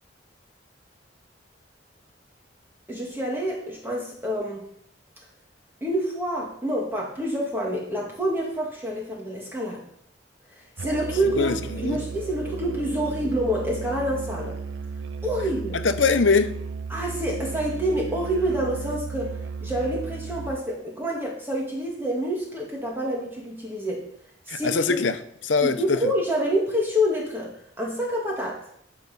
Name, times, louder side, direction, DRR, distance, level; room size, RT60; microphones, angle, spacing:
voice 1, 2.9-4.7 5.8-9.8 10.5-14.6 15.2-15.8 16.9-19.3 19.6-24.0 24.5-24.9 25.6-28.7, equal, 10° right, 1.8 m, -27 dB
Musical instrument, 10.8-20.7, right 5 dB, 70° right, 0.4 m, -34 dB
voice 2, 11.4-12.0 15.8-16.5 24.5-25.8, left 4 dB, 85° left, 0.8 m, -22 dB
10.5 x 6.0 x 5.4 m
head